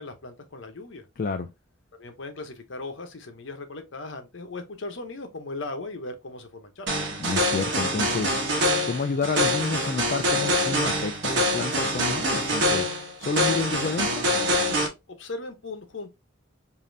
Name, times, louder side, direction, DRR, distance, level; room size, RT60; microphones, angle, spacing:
voice 1, 0.0-1.1 2.0-6.9 15.1-16.1, left 2 dB, 65° left, 0.8 m, -38 dB
voice 2, 1.2-1.5 7.2-14.2, left 4 dB, 40° left, 0.3 m, -30 dB
sound 1, 6.9-14.9, equal, 55° right, 1.2 m, -25 dB
5.1 x 2.7 x 2.6 m
head